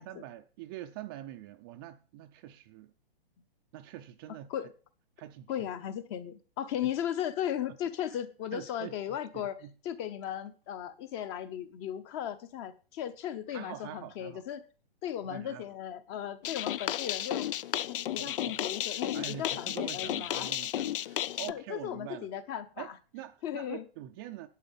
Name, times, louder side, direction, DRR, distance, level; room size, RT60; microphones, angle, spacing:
voice 1, 0.0-2.9 3.7-4.7 5.2-5.7 6.8-6.9 8.5-9.7 13.5-14.4 15.2-15.6 18.2-18.6 18.9-22.3 22.8-24.5, right 13 dB, 25° right, 0.5 m, -45 dB
voice 2, 5.5-14.6 15.0-17.5 17.9-20.5 21.5-22.9 23.4-23.8, left 10 dB, 30° left, 0.9 m, -36 dB
sound 1, 16.4-21.5, left 11 dB, 60° left, 0.6 m, -33 dB
11.0 x 8.8 x 5.5 m
hypercardioid pair, 150°, 30 cm